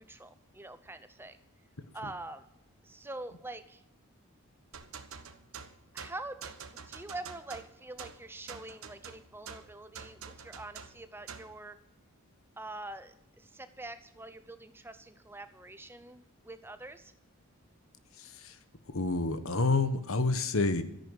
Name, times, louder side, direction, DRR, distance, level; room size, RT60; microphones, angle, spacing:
voice 1, 0.0-1.4 1.9-2.4 2.8-3.8 5.9-6.5 6.9-11.8 12.6-17.1, right 2 dB, 10° right, 11 dB, 0.7 m, -45 dB
sound 1, 4.7-11.6, right 6 dB, 80° right, 1.2 m, -47 dB
voice 2, 18.2-18.6 18.9-20.8, left 3 dB, 75° left, 11 dB, 1.3 m, -29 dB
13.5 x 10.5 x 6.5 m, 0.83 s
head